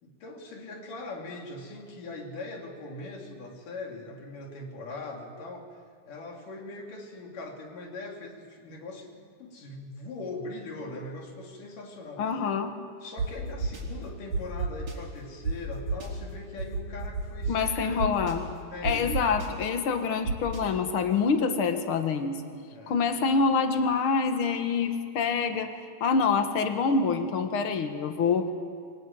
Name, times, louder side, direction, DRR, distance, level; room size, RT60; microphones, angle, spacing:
voice 1, 0.0-9.1 9.4-12.5 13.0-18.2 18.7-19.3 22.7-23.0, left 2 dB, 80° left, 1 dB, 4.6 m, -41 dB
voice 2, 12.2-12.8 17.5-18.4 18.8-22.4 22.9-25.7 26.0-28.5, left 5 dB, 50° left, 7 dB, 2.1 m, -26 dB
sound 1, 13.2-13.3 13.6-13.8 14.3-14.9 15.4-15.5 15.9-16.1 16.6-17.5 18.0-18.3 18.8-19.5 20.2-20.6, right 4 dB, 55° right, 5.4 m, -29 dB
25.0 x 20.0 x 9.4 m, 2.1 s
omnidirectional pair, 3.7 m